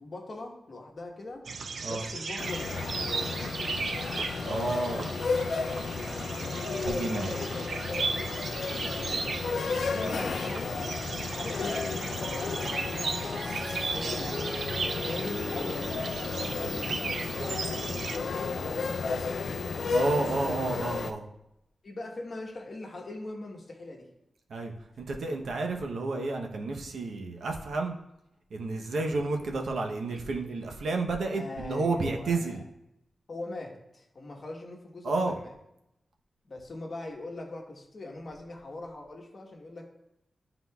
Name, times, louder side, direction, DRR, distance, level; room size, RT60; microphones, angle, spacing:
voice 1, 0.0-1.4 1.9-3.7 6.0-8.4 8.7-9.5 9.8-10.9 11.3-16.0 16.4-20.6 21.8-24.1 29.4-29.6 31.3-32.6 33.3-35.5 36.4-39.9, left 2 dB, 45° left, 1 dB, 1.1 m, -42 dB
sound 1, 1.4-18.2, right 4 dB, 65° right, 0.4 m, -36 dB
sound 2, 2.4-21.1, left 4 dB, 70° left, 0.3 m, -33 dB
voice 2, 4.4-5.1 6.9-7.3 9.9-10.2 19.9-21.3 24.5-28.0 28.5-32.6 35.0-35.4, right 3 dB, 85° right, 2 dB, 0.7 m, -31 dB
Piano, 11.3-20.8, left 2 dB, 20° left, 0.8 m, -43 dB
11.0 x 3.9 x 2.3 m, 0.85 s
wide cardioid pair, 150°, 0 cm